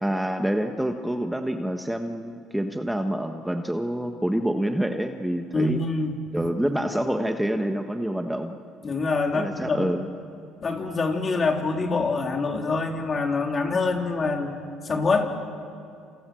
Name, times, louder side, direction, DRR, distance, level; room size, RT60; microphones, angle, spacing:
voice 1, 0.0-5.8 6.3-8.6 9.3-10.1, right 1 dB, 5° right, 5 dB, 1.5 m, -27 dB
voice 2, 5.5-6.2 8.8-10.0 10.6-14.6 14.8-15.3, left 3 dB, 35° left, 2 dB, 3.7 m, -25 dB
29.5 x 28.5 x 6.5 m, 2.5 s
supercardioid pair, 85°, 0 cm